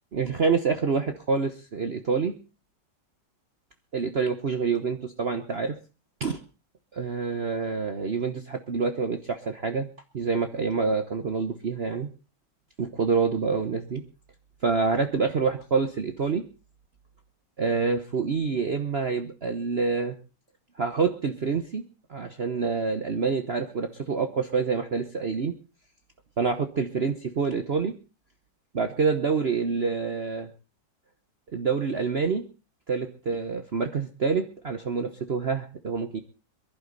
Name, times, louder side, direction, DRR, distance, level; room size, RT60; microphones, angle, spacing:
voice 1, 0.1-2.4 3.9-5.8 6.2-6.4 6.9-9.9 10.1-12.1 12.8-14.0 14.6-16.4 17.6-20.1 20.8-21.8 22.1-25.5 26.4-27.9 28.7-30.5 31.5-32.4 32.9-36.2, right 5 dB, 45° right, 7 dB, 1.0 m, -27 dB
22.5 x 11.5 x 3.9 m, 0.33 s
omnidirectional pair, 1.9 m